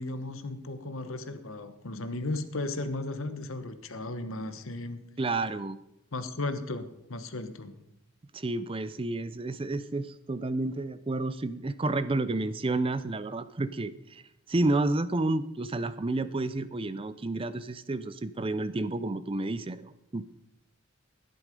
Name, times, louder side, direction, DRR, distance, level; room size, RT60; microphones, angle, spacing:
voice 1, 0.0-5.0 6.1-7.8, left 2 dB, 65° left, 10 dB, 1.1 m, -35 dB
voice 2, 5.2-5.8 8.3-14.2 14.5-20.2, right 2 dB, 25° right, 14 dB, 0.4 m, -30 dB
11.5 x 10.5 x 5.2 m, 0.81 s
head